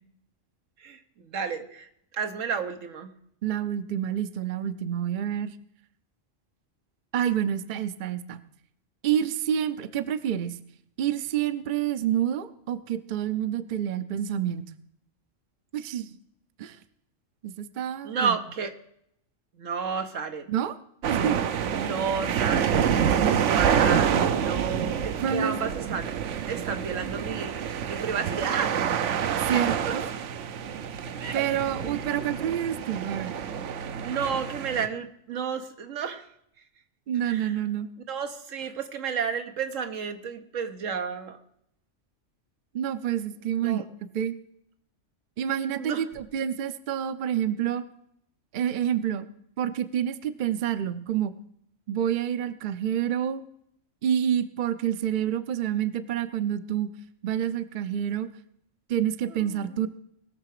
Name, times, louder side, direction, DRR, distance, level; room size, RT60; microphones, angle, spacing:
voice 1, 0.8-1.9 2.1-3.1 18.0-18.8 19.5-20.5 21.7-22.9 23.4-26.1 26.5-30.0 31.2-31.6 31.9-32.0 34.0-36.3 37.2-37.6 38.1-41.4 43.6-43.9 45.7-46.1 59.3-59.6, right 6 dB, 85° right, 7 dB, 1.4 m, -32 dB
voice 2, 3.4-5.5 7.1-8.4 9.0-10.6 11.0-14.7 15.7-16.2 16.6-16.8 17.4-18.3 20.5-20.8 21.1-21.4 25.2-25.6 29.4-30.1 31.3-33.3 37.1-37.9 42.7-43.8 44.1-44.4 45.4-47.8 48.5-49.3 49.6-51.3 51.9-53.4 54.0-56.9 57.2-58.3 58.9-59.9, right 10 dB, 50° right, 12 dB, 0.7 m, -28 dB
sound 1, 21.0-34.9, right 8 dB, 70° right, 1.0 m, -27 dB
20.0 x 6.7 x 4.9 m, 0.73 s
omnidirectional pair, 1.3 m